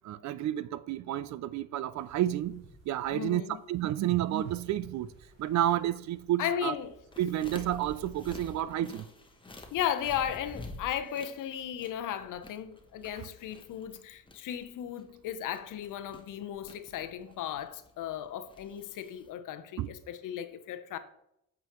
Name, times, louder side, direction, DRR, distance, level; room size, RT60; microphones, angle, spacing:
voice 1, 0.0-3.4 3.7-5.1 5.4-6.7 7.2-9.1 19.8-19.9, right 12 dB, 55° right, 0.4 m, -30 dB
sound 1, 1.9-8.7, right 2 dB, 35° right, 2.8 m, -58 dB
voice 2, 3.1-3.6 6.4-6.9 9.7-21.0, left 10 dB, 65° left, 0.8 m, -35 dB
sound 2, 7.1-19.3, left 2 dB, 15° left, 1.0 m, -50 dB
8.1 x 5.0 x 3.0 m
supercardioid pair, 80°, 33 cm